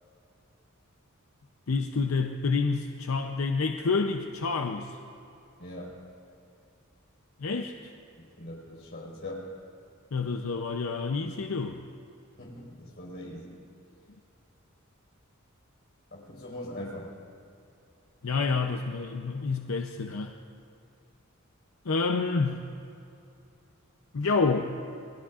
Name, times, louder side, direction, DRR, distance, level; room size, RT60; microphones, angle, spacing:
voice 1, 1.7-5.0 7.4-7.9 10.1-11.8 18.2-20.3 21.8-22.7 24.1-24.7, left 4 dB, 90° left, 4 dB, 0.7 m, -28 dB
voice 2, 5.6-6.0 8.2-9.5 12.4-13.6 16.1-17.1, left 1 dB, 55° left, -3 dB, 4.9 m, -41 dB
28.0 x 20.5 x 2.5 m, 2.6 s
head